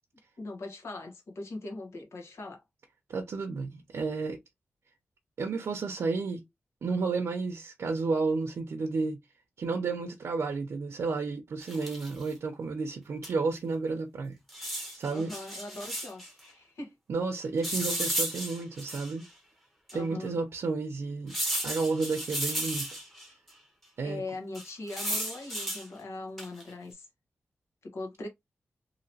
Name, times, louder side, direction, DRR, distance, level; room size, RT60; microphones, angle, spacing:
voice 1, 0.4-2.6 15.1-16.9 19.9-20.4 24.0-27.1 27.8-28.3, left 2 dB, 75° left, 1.2 m, -40 dB
voice 2, 3.1-4.4 5.4-6.4 6.8-9.2 9.6-14.4 15.0-15.3 17.1-19.2 19.9-21.3 21.6-22.9 24.0-24.2, right 4 dB, 80° right, 0.6 m, -31 dB
sound 1, 11.6-12.2 13.2-13.3 13.6-13.7 14.5-16.3 17.6-19.3 19.9-20.0 21.3-23.3 24.5-25.9 26.4-26.7, right 1 dB, 5° left, 1.0 m, -34 dB
2.9 x 2.9 x 2.7 m
wide cardioid pair, 145°, 5 cm